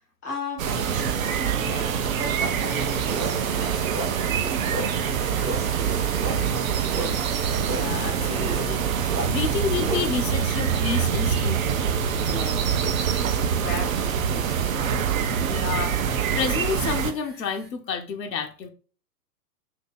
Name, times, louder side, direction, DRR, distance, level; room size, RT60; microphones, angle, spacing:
voice 1, 0.2-6.6 12.2-15.2, left 2 dB, 10° left, 0.4 m, -38 dB
sound 1, 0.6-17.1, right 7 dB, 55° right, 0.6 m, -25 dB
sound 2, 2.4-17.7, right 5 dB, 35° right, 0.9 m, -45 dB
sound 3, 2.4-10.6, right 2 dB, 80° right, 1.0 m, -35 dB
voice 2, 7.6-11.9 15.5-16.0 16.3-18.7, left 6 dB, 85° left, 0.6 m, -30 dB
2.7 x 2.7 x 3.7 m
figure-of-eight pair, 115°, 49 cm